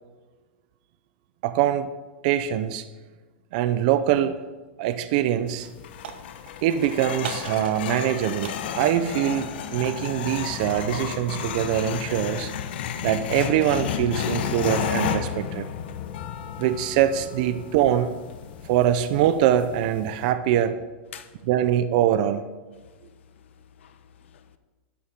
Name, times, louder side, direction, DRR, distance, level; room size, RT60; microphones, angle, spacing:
voice 1, 1.4-1.9 2.2-2.8 3.5-4.4 4.8-5.7 6.6-12.5 13.0-15.7 16.6-18.1 18.6-20.8 21.5-22.4, right 11 dB, 40° right, 11 dB, 0.6 m, -23 dB
sound 1, 4.9-5.2 5.5-6.7 7.2-8.1 8.4-10.1, right 8 dB, 65° right, 1.1 m, -40 dB
sound 2, 5.5-20.3, left 9 dB, 55° left, 1.1 m, -32 dB
voice 2, 21.1-21.5 22.7-24.6, left 9 dB, 80° left, 10 dB, 1.2 m, -49 dB
12.0 x 10.5 x 5.2 m, 1.3 s
supercardioid pair, 170°, 6 cm